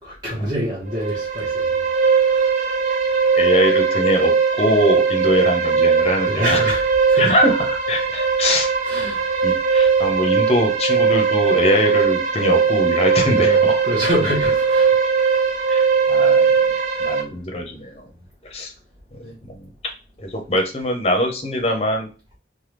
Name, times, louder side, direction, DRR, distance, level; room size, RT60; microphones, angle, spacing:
voice 1, 0.0-2.6 6.3-7.3 8.8-9.3 13.2-15.4 19.2-19.3, equal, 25° right, 1.0 m, -27 dB
sound 1, 0.9-17.2, right 5 dB, 45° right, 0.6 m, -19 dB
voice 2, 3.3-6.7 7.2-8.7 9.4-13.8 15.7-16.5 17.0-18.0 18.5-18.7 19.2-19.6 20.2-22.1, equal, 35° left, 0.7 m, -22 dB
3.4 x 2.2 x 3.1 m
head